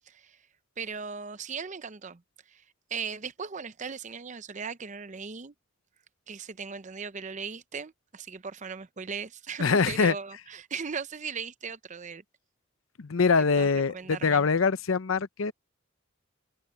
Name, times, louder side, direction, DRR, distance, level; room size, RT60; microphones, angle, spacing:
voice 1, 0.1-0.4 0.8-2.2 2.5-2.6 2.9-5.5 6.3-12.2 13.6-14.5, right 5 dB, 35° right, 0.7 m, -38 dB
voice 2, 9.6-10.1 13.0-15.5, left 5 dB, 80° left, 0.7 m, -24 dB
head